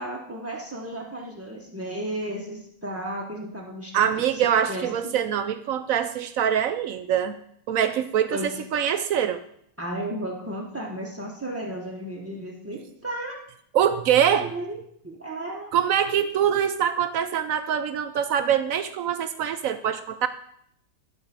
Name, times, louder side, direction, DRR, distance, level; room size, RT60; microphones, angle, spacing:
voice 1, 0.0-5.2 8.3-8.6 9.8-13.4 14.3-15.8, right 1 dB, 15° right, -1 dB, 0.5 m, -34 dB
voice 2, 3.9-7.4 7.7-9.4 13.7-14.5 15.7-20.3, right 9 dB, 70° right, 10 dB, 0.8 m, -24 dB
12.0 x 4.4 x 6.7 m, 0.70 s
omnidirectional pair, 1.8 m